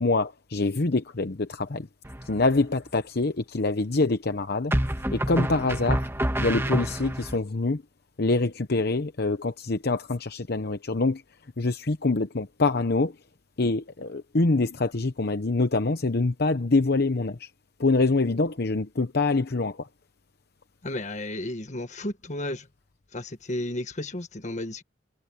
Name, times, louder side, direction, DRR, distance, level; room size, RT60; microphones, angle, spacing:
voice 1, 0.0-1.9 2.3-4.7 5.1-6.1 6.4-7.8 8.2-11.2 11.6-13.1 13.6-17.5 17.8-19.9, left 3 dB, 55° left, 0.9 m, -25 dB
sound 1, 2.1-2.6 4.7-7.4, right 1 dB, 15° right, 1.8 m, -28 dB
voice 2, 20.8-22.6 23.1-24.8, left 1 dB, 40° left, 1.5 m, -33 dB
head